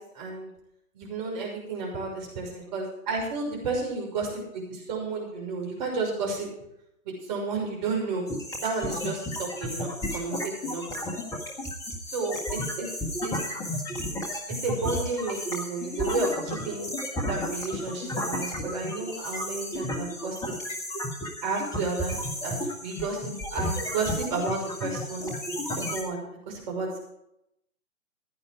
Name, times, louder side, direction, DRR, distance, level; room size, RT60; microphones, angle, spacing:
voice 1, 0.1-0.5 0.9-6.5 7.0-8.2 8.6-11.1 12.1-12.9 13.2-13.4 14.5-16.9 17.2-20.5 21.4-27.0, right 3 dB, 30° right, 0 dB, 6.1 m, -32 dB
sound 1, 8.3-26.0, left 1 dB, 10° left, 1.6 m, -33 dB
15.5 x 10.5 x 4.8 m, 0.79 s
figure-of-eight pair, 135°, 43 cm